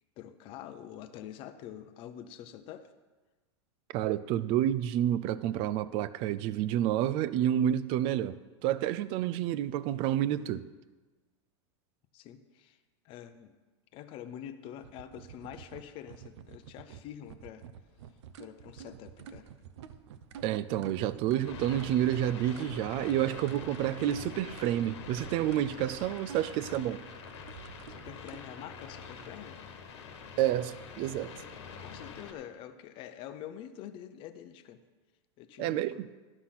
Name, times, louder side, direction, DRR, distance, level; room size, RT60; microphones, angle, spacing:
voice 1, 0.2-2.9 12.1-12.8 13.0-13.5 13.9-17.6 18.4-19.5 20.8-20.9 27.9-29.6 31.8-34.8 35.4-36.0, left 10 dB, 35° left, 0.6 m, -46 dB
voice 2, 3.9-10.7 20.4-27.0 30.4-31.3 35.6-36.1, right 11 dB, 40° right, 0.4 m, -29 dB
sound 1, 14.8-28.4, right 7 dB, 75° right, 0.7 m, -49 dB
sound 2, 21.4-32.3, left 5 dB, 75° left, 1.4 m, -46 dB
12.0 x 6.0 x 5.7 m
supercardioid pair, 145°, 15 cm